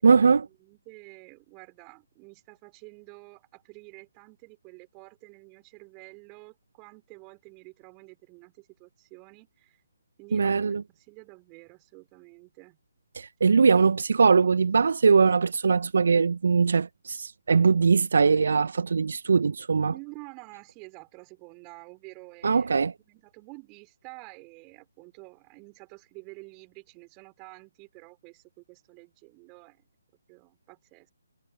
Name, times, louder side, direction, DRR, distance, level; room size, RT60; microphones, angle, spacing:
voice 1, 0.0-0.5 10.3-10.8 13.1-19.9 22.4-22.9, right 5 dB, 60° right, 1.6 m, -21 dB
voice 2, 0.6-9.8 10.2-12.8 19.8-22.7 23.0-29.8 30.3-31.1, right 31 dB, 20° right, 6.4 m, -49 dB
figure-of-eight pair, 140°, 0 cm